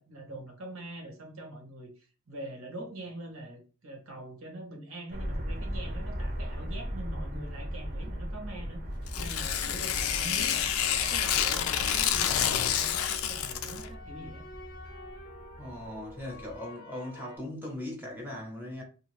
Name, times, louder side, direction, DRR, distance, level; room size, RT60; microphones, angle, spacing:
voice 1, 0.0-8.8 9.2-14.4, right 1 dB, 75° right, 1.1 m, -43 dB
sound 1, 5.1-16.6, equal, 45° right, 0.7 m, -39 dB
Tearing, 9.1-13.9, left 9 dB, 85° left, 0.4 m, -28 dB
sound 2, 10.0-11.8 12.5-17.4, left 1 dB, 45° left, 0.6 m, -49 dB
voice 2, 15.6-18.8, left 1 dB, 10° right, 0.7 m, -39 dB
2.7 x 2.3 x 3.0 m
head